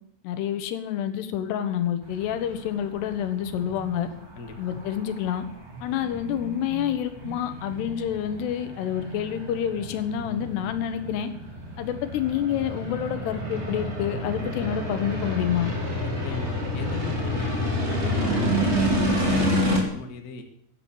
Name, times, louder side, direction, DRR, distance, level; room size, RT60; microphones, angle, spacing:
voice 1, 0.2-4.1 4.6-5.5 5.8-11.3 11.8-15.7, left 10 dB, 90° left, 9 dB, 3.4 m, -28 dB
sound 1, 2.0-19.8, equal, 20° right, 2.6 m, -29 dB
voice 2, 4.3-4.8 16.0-20.4, left 4 dB, 50° left, 4 dB, 1.1 m, -37 dB
16.5 x 9.8 x 7.2 m, 0.71 s
omnidirectional pair, 4.7 m